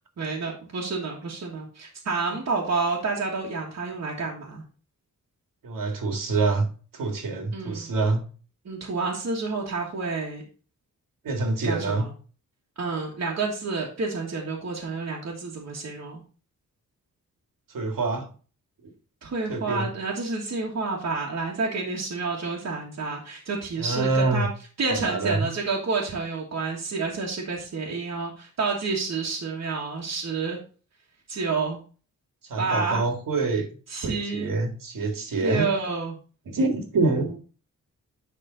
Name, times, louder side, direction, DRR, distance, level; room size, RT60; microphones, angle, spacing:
voice 1, 0.2-4.6 7.5-7.9 8.6-10.4 11.6-12.1 12.8-16.2 19.2-24.5 24.8-30.6 31.3-31.8 32.6-33.0 33.9-34.5 35.4-36.2 37.1-37.4, right 4 dB, 55° right, -2 dB, 1.6 m, -29 dB
voice 2, 5.6-6.7 6.9-8.2 11.2-12.1 17.7-18.3 19.5-19.9 23.8-24.5 24.9-25.5 32.5-33.7 34.0-35.7 36.5-37.4, right 3 dB, 80° right, 4 dB, 1.9 m, -26 dB
10.5 x 3.7 x 3.9 m, 0.38 s
wide cardioid pair, 160°, 32 cm